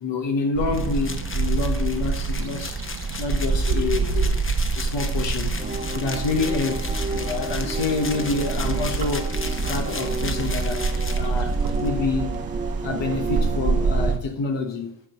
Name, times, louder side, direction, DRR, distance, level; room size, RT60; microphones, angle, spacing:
voice 1, 0.0-2.8 3.2-4.4 4.8-5.6 5.9-9.3 9.7-10.9 11.2-11.5 11.8-12.3 12.8-14.9, left 4 dB, 85° left, 5 dB, 1.1 m, -27 dB
sound 1, 0.5-14.2, right 4 dB, 55° right, 0.9 m, -26 dB
sound 2, 0.7-11.9, left 3 dB, 30° left, 0.9 m, -36 dB
sound 3, 5.6-14.1, right 3 dB, 20° right, 0.7 m, -33 dB
8.1 x 3.1 x 6.3 m, 0.72 s
cardioid pair, 40°, 43 cm